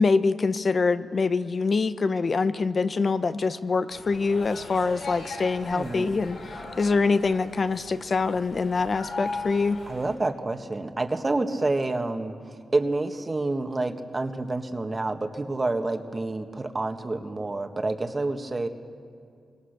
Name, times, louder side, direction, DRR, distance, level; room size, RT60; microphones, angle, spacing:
voice 1, 0.0-6.4 6.8-9.8, left 4 dB, 45° left, 12 dB, 0.9 m, -24 dB
sound 1, 3.9-10.1, left 3 dB, 80° left, 5.2 m, -39 dB
voice 2, 5.7-6.2 9.9-12.3 12.7-18.7, right 2 dB, 30° right, 5 dB, 1.7 m, -28 dB
28.5 x 24.5 x 6.8 m, 2.2 s
cardioid pair, 90°, 0 cm